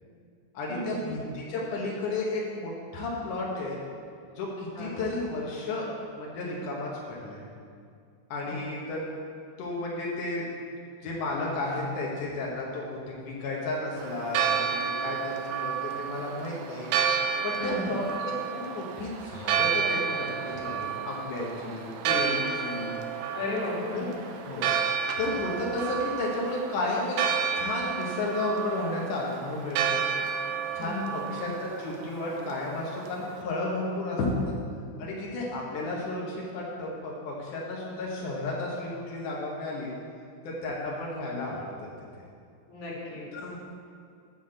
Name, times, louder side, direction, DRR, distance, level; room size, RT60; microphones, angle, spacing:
voice 1, 0.5-3.8 4.4-5.9 6.1-7.4 8.3-9.0 9.6-10.4 11.0-16.9 17.4-22.9 23.9-24.1 24.4-24.7 25.2-27.2 27.5-30.0 30.7-34.2 35.0-39.9 40.4-41.7 43.3-43.6, left 2 dB, 85° left, -4 dB, 1.8 m, -33 dB
Church bell, 14.0-33.4, right 7 dB, 80° right, 2.8 m, -31 dB
voice 2, 17.6-17.9 23.3-24.0 30.8-31.2 42.7-43.2, left 2 dB, 50° left, -5 dB, 2.6 m, -34 dB
8.4 x 5.6 x 7.6 m, 2.3 s
omnidirectional pair, 5.6 m